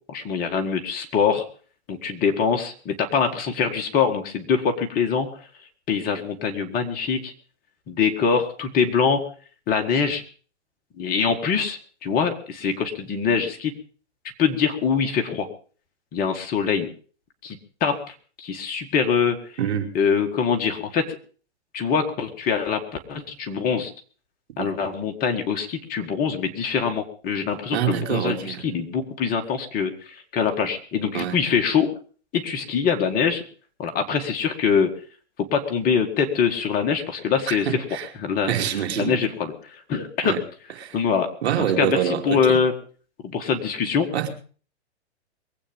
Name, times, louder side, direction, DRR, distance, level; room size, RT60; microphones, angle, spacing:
voice 1, 0.1-1.4 1.9-5.4 5.9-7.3 7.9-9.3 9.7-10.2 11.0-13.7 14.4-15.5 16.1-16.9 17.4-19.4 19.9-21.2 21.7-22.8 23.1-23.9 24.6-31.9 32.3-33.4 33.8-34.9 35.4-37.7 38.2-38.5 39.0-40.4 40.9-41.3 41.8-42.7 43.2-44.3, left 6 dB, 25° left, 5 dB, 1.9 m, -24 dB
voice 2, 19.6-19.9 24.6-24.7 27.7-28.7 31.1-31.4 37.5-38.1 38.5-39.2 40.2-40.4 40.8-41.0 41.4-42.6 44.1-44.3, right 9 dB, 65° right, 5 dB, 3.0 m, -26 dB
22.5 x 8.7 x 5.3 m, 0.41 s
hypercardioid pair, 135°, 34 cm